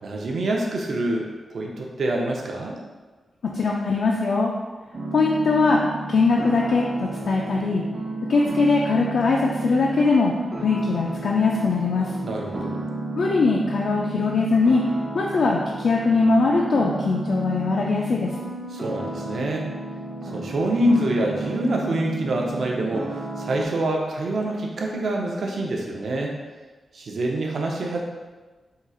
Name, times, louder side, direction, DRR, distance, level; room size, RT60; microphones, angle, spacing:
voice 1, 0.0-2.8 12.2-12.8 18.7-19.7 20.3-26.4 26.9-28.0, right 1 dB, 65° right, 0 dB, 0.6 m, -26 dB
voice 2, 3.4-4.5 5.1-5.8 6.1-7.8 8.3-10.3 10.6-12.1 13.2-14.8 15.1-18.3, left 3 dB, 70° left, -2 dB, 0.4 m, -21 dB
sound 1, 4.9-23.6, right 2 dB, 40° right, 0.8 m, -32 dB
3.8 x 2.3 x 4.2 m, 1.3 s
wide cardioid pair, 145°, 0 cm